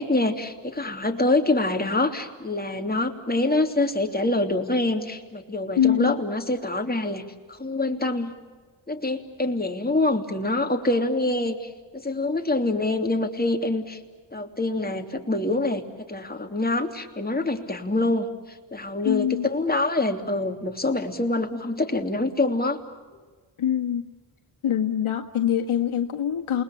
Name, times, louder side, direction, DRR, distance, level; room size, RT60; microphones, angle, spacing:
voice 1, 0.0-7.2 7.5-8.3 8.9-14.0 14.3-15.8 16.1-18.3 18.7-22.8, left 2 dB, 20° left, 4 dB, 3.1 m, -25 dB
voice 2, 5.7-6.1 19.0-19.5 23.1-23.2 23.6-24.0 24.6-26.6, left 9 dB, 75° left, 5 dB, 1.8 m, -24 dB
28.5 x 21.0 x 8.5 m, 1.4 s
cardioid pair, 50°, 50 cm